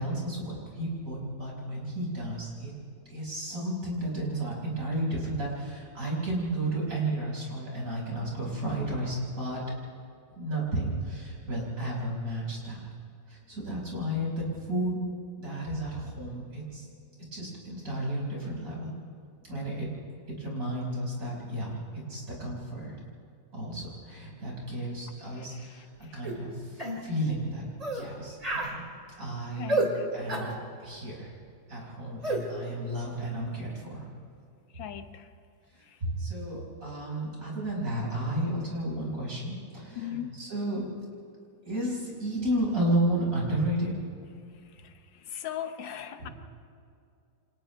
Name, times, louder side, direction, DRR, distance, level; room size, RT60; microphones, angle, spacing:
voice 1, 0.0-2.7 3.1-9.6 10.4-12.8 13.3-15.0 15.4-16.9 17.3-18.9 19.5-19.9 20.4-22.9 23.5-25.8 26.1-27.6 27.9-28.8 29.2-29.8 30.1-30.5 30.8-31.3 31.7-34.0 36.0-40.9 41.6-44.0 46.2-46.3, right 1 dB, 45° right, -4 dB, 6.2 m, -32 dB
sound 1, 26.2-26.4 26.8-27.0 27.8-28.1 28.4-28.7 29.7-29.9 30.3-30.5 32.2-32.4, right 2 dB, 20° right, 2.6 m, -29 dB
voice 2, 29.6-30.1 34.7-35.2 40.0-40.4 45.3-46.3, left 10 dB, 85° left, 8 dB, 1.7 m, -38 dB
29.0 x 26.5 x 3.5 m, 2.4 s
omnidirectional pair, 2.0 m